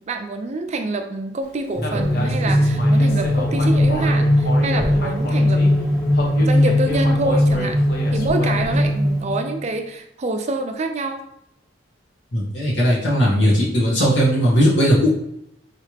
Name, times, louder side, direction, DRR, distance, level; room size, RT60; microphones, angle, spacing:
voice 1, 0.0-6.0 6.4-7.8 8.1-11.2, right 2 dB, 35° right, 6 dB, 0.4 m, -26 dB
sound 1, 1.7-9.7, left 1 dB, 15° left, 1.3 m, -19 dB
Human voice, 1.8-5.7 6.1-8.9, left 1 dB, 55° left, 1.0 m, -30 dB
voice 2, 12.3-15.1, equal, 80° left, -6 dB, 1.8 m, -17 dB
4.7 x 3.3 x 3.3 m, 0.76 s
head